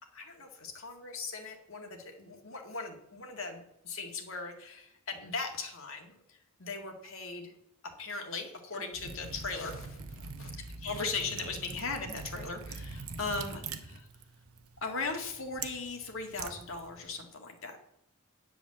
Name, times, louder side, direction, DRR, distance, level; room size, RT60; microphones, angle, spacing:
voice 1, 0.0-7.5 7.8-10.5 10.8-14.1 14.8-17.8, left 4 dB, 60° left, 3 dB, 1.9 m, -39 dB
Liquid, 8.9-17.2, right 4 dB, 75° right, 1.0 m, -44 dB
10.0 x 5.2 x 7.3 m, 0.80 s
head